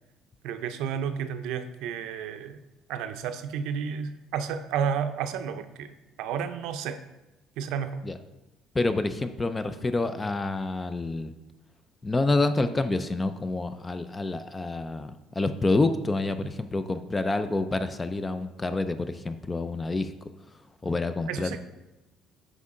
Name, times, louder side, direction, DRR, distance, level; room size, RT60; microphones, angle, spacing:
voice 1, 0.4-2.6 2.9-7.0 7.6-8.0 21.3-21.6, right 7 dB, 80° right, 9 dB, 0.5 m, -31 dB
voice 2, 8.7-11.3 12.0-20.1 20.8-21.6, left 2 dB, 15° left, 10 dB, 0.3 m, -28 dB
8.1 x 5.2 x 3.7 m, 0.99 s
cardioid pair, 170°, 0 cm